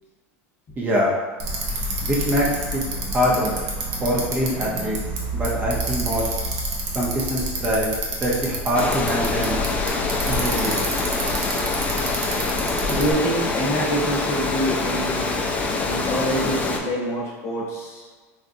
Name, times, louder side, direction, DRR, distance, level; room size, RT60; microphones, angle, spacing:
voice 1, 0.8-1.1 2.0-2.8 3.1-3.5 4.0-5.0 5.3-6.3 6.9-7.9 8.2-9.6 10.3-10.9, equal, 20° right, -4 dB, 0.7 m, -23 dB
Bicycle, 1.4-13.1, right 2 dB, 55° right, 0.8 m, -29 dB
Water, 8.7-16.8, left 3 dB, 20° left, 0.4 m, -25 dB
voice 2, 12.7-15.3 15.8-18.1, right 1 dB, 40° left, -3 dB, 0.9 m, -26 dB
4.1 x 2.4 x 2.6 m, 1.4 s
supercardioid pair, 120°, 8 cm